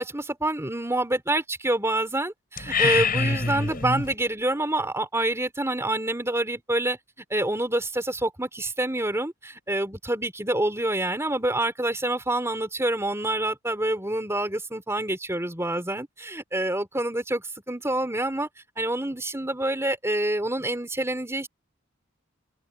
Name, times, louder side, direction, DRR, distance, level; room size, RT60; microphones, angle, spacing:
voice 1, 0.0-7.0 7.3-18.5 18.8-21.5, right 1 dB, 15° right, 3.9 m, -27 dB
sound 1, 2.6-4.1, left 4 dB, 45° left, 7.9 m, -25 dB
open air
head